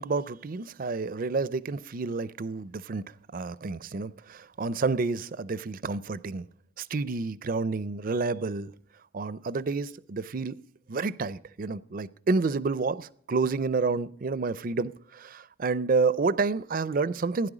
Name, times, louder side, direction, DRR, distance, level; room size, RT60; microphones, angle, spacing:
voice 1, 0.0-3.0 3.3-6.5 6.8-8.7 9.1-10.6 10.9-17.5, right 4 dB, 45° right, 0.5 m, -29 dB
16.0 x 10.5 x 4.9 m
head